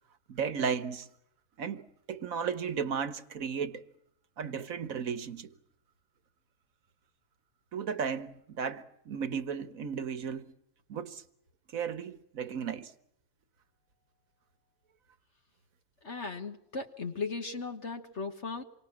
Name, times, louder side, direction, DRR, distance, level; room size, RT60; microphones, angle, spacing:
voice 1, 0.3-1.1 1.6-1.8 2.1-3.8 4.4-5.5 7.7-10.5 10.9-11.2 11.7-12.9, right 6 dB, 60° right, 1.7 m, -34 dB
voice 2, 16.0-18.6, left 4 dB, 45° left, 1.6 m, -37 dB
28.0 x 24.0 x 7.5 m
omnidirectional pair, 1.7 m